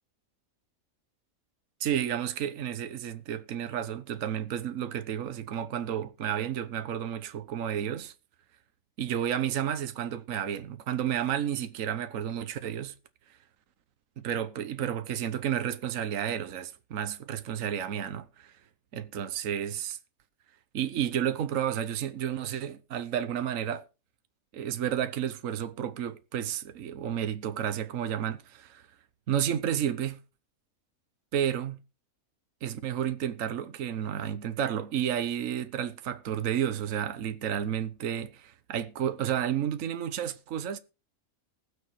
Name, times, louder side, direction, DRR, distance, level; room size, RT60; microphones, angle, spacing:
voice 1, 1.8-8.1 9.0-12.9 14.2-18.5 18.9-20.0 20.7-23.9 24.5-28.9 29.3-30.2 31.3-31.8 32.6-40.8, right 9 dB, 65° right, 1.3 m, -31 dB
20.0 x 6.7 x 4.8 m
omnidirectional pair, 1.5 m